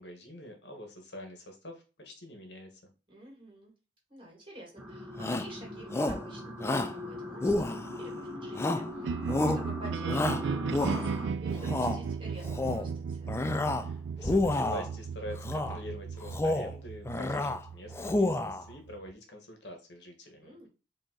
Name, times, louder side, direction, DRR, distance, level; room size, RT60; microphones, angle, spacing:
voice 1, 0.0-2.9 13.7-20.7, equal, 80° left, 4 dB, 1.3 m, -45 dB
voice 2, 3.1-3.7 4.1-9.2 9.5-13.4 20.4-20.7, right 1 dB, 30° right, -1 dB, 2.1 m, -49 dB
sound 1, 4.8-11.3, left 1 dB, 5° right, 0.8 m, -40 dB
Shout, 5.2-5.5 5.9-6.3 6.6-7.0 7.4-8.1 8.6-8.9 9.3-9.7 10.1-11.2 11.6-12.0 12.4-12.9 13.3-13.9 14.2-14.9 15.4-15.8 16.2-16.7 17.1-17.6 17.9-18.6, left 2 dB, 15° left, 0.3 m, -29 dB
sound 2, 9.0-19.1, right 5 dB, 85° right, 0.3 m, -36 dB
4.9 x 2.8 x 3.8 m, 0.32 s
head